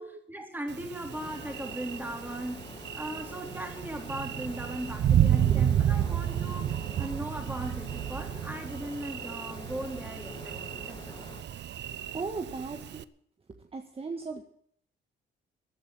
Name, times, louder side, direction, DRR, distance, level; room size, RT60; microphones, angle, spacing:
voice 1, 0.3-2.6 2.9-10.6 10.9-11.2, right 1 dB, 10° right, 3 dB, 3.6 m, -38 dB
Thunder, 0.7-13.0, right 10 dB, 60° right, 0.7 m, -31 dB
sound 1, 1.1-11.4, left 3 dB, 25° left, 1.5 m, -47 dB
voice 2, 11.9-13.0 13.6-14.4, right 4 dB, 30° right, 5 dB, 1.5 m, -38 dB
14.0 x 9.6 x 8.8 m, 0.67 s
cardioid pair, 90°, 20 cm